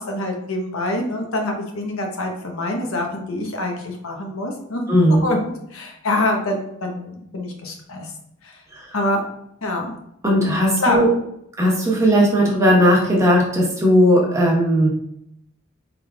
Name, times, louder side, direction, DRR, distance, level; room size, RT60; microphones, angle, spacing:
voice 1, 0.0-4.8 5.2-8.1 8.4-8.6 8.9-9.2 9.6-9.9 10.8-11.1, left 1 dB, 90° left, 2 dB, 1.0 m, -25 dB
voice 2, 4.9-5.2 8.7-8.8 10.2-11.1 11.6-14.9, equal, 15° right, -4 dB, 1.1 m, -16 dB
4.9 x 3.7 x 2.4 m, 0.75 s
head